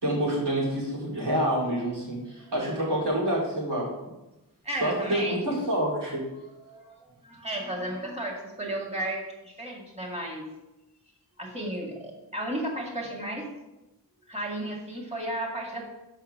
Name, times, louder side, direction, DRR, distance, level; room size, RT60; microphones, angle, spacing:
voice 1, 0.0-3.9 4.8-6.3, right 1 dB, 85° right, -4 dB, 2.8 m, -27 dB
voice 2, 2.7-3.1 4.6-5.4 6.6-10.4 11.4-13.5 14.3-15.9, right 1 dB, 15° right, -2 dB, 2.1 m, -34 dB
5.7 x 5.5 x 6.6 m, 0.99 s
wide cardioid pair, 55°, 40 cm